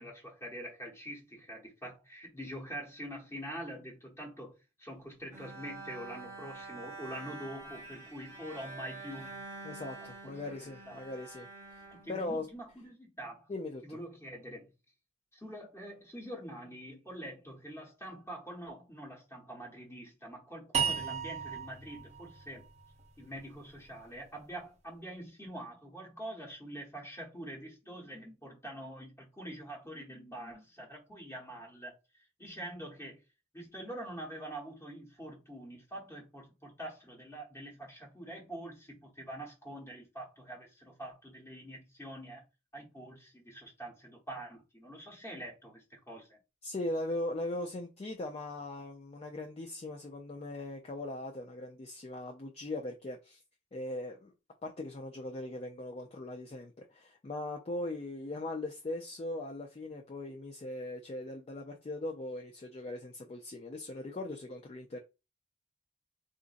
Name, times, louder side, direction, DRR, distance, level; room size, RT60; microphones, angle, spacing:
voice 1, 0.0-9.5 10.2-11.0 11.9-13.5 13.8-14.7 15.3-22.7 23.2-32.0 32.4-33.2 33.5-42.4 42.7-46.4, right 1 dB, 15° left, 1.0 m, -45 dB
Bowed string instrument, 5.3-12.7, right 3 dB, 15° right, 1.0 m, -47 dB
voice 2, 9.6-11.8 12.1-12.5 13.5-14.0 46.6-53.4 53.7-54.3 54.6-65.0, left 2 dB, 30° left, 0.4 m, -39 dB
sound 1, 20.7-23.9, right 7 dB, 35° right, 0.6 m, -36 dB
3.9 x 2.5 x 2.5 m
head